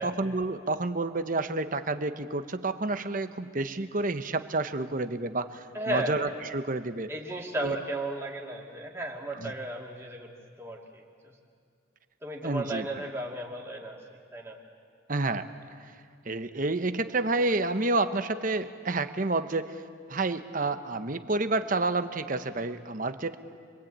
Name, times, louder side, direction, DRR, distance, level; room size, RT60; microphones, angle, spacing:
voice 1, 0.0-7.1 7.6-7.8 9.3-9.5 12.4-12.9 15.1-15.5 16.2-19.8 20.1-23.4, right 2 dB, 45° right, 10 dB, 1.0 m, -29 dB
voice 2, 5.7-6.2 7.1-10.3 10.6-11.3 12.2-14.0 14.3-14.6, right 1 dB, 15° right, -2 dB, 2.4 m, -34 dB
26.5 x 23.0 x 8.8 m, 2.2 s
head